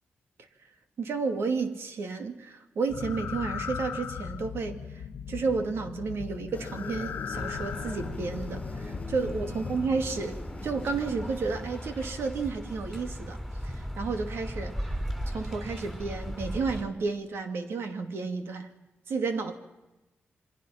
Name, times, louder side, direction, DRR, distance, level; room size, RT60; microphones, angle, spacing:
voice 1, 1.0-15.0 15.3-18.7 19.1-19.5, right 4 dB, 80° right, 2.5 m, -32 dB
sound 1, 2.9-10.0, left 7 dB, 85° left, 1.1 m, -38 dB
sound 2, 6.5-12.1, left 4 dB, 35° left, 0.9 m, -44 dB
sound 3, 7.3-16.8, equal, 10° right, 6.6 m, -37 dB
28.0 x 24.5 x 5.9 m
wide cardioid pair, 110°, 4 cm